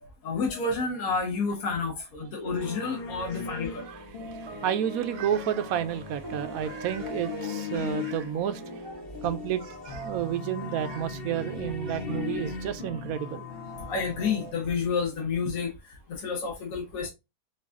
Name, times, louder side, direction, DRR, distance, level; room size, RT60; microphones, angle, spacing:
voice 1, 0.2-3.8 8.8-8.9 13.9-17.1, left 4 dB, 60° left, 1.6 m, -30 dB
sound 1, 2.4-11.6, right 3 dB, 25° right, 0.6 m, -44 dB
sound 2, 2.6-14.5, left 4 dB, 45° left, 0.9 m, -38 dB
voice 2, 3.8-8.9 9.2-13.5, right 10 dB, 70° right, 0.9 m, -31 dB
4.6 x 2.4 x 3.5 m
omnidirectional pair, 1.7 m